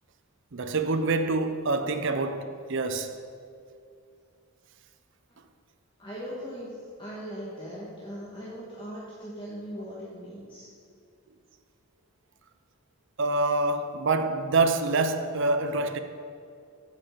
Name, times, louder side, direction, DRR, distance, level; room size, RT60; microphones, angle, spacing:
voice 1, 0.5-3.2 13.2-16.0, right 3 dB, 55° right, 0.6 m, -26 dB
voice 2, 6.0-10.7, equal, 20° left, 1.4 m, -39 dB
15.0 x 5.8 x 5.1 m
head